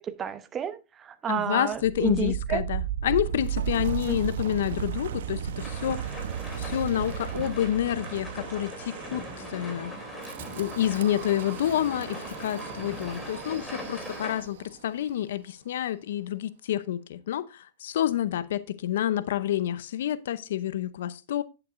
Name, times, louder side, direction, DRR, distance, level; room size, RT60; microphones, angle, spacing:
voice 1, 0.2-2.6 4.1-4.2, right 8 dB, 25° right, 0.9 m, -31 dB
voice 2, 1.3-6.0 6.6-9.2 9.5-9.9 10.5-21.4, left 11 dB, 75° left, 0.7 m, -28 dB
Wind, 1.7-14.7, right 9 dB, 80° right, 0.9 m, -35 dB
sound 1, 5.6-14.4, left 1 dB, 10° left, 3.0 m, -42 dB
sound 2, 6.5-15.3, right 1 dB, 5° right, 5.5 m, -48 dB
10.5 x 8.5 x 2.6 m
hypercardioid pair, 130°, 0 cm